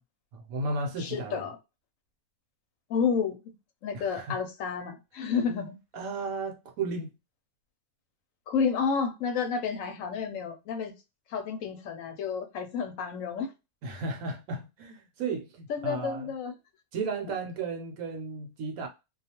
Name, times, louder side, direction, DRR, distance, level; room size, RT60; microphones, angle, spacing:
voice 1, 0.3-1.4 3.9-4.4 5.9-7.1 13.8-16.3 16.9-18.9, right 3 dB, 75° right, 1.0 m, -34 dB
voice 2, 1.0-1.6 2.9-3.4 3.8-5.8 8.5-10.9 11.3-13.5 15.7-16.5, left 6 dB, 70° left, 0.9 m, -30 dB
2.4 x 2.3 x 2.8 m
omnidirectional pair, 1.6 m